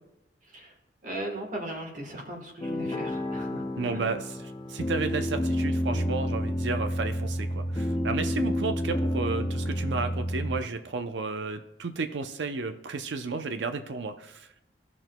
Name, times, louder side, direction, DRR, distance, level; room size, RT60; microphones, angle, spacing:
voice 1, 1.0-3.6 3.9-4.0, right 1 dB, 50° right, 2 dB, 1.3 m, -37 dB
sound 1, 2.6-10.6, equal, 25° left, 0.5 m, -29 dB
voice 2, 3.8-14.6, right 4 dB, 85° right, 8 dB, 0.5 m, -33 dB
17.5 x 6.1 x 2.2 m, 0.87 s
head